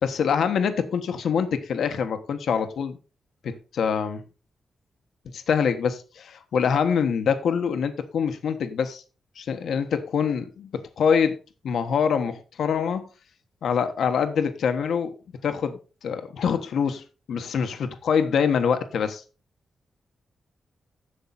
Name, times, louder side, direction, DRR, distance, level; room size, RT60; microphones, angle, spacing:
voice 1, 0.0-3.0 3.4-4.2 5.3-9.0 9.4-11.4 11.6-13.0 13.6-15.2 15.4-17.0 17.3-19.2, left 7 dB, 80° left, 1.3 m, -25 dB
11.5 x 7.2 x 4.1 m
cardioid pair, 75°, 0 cm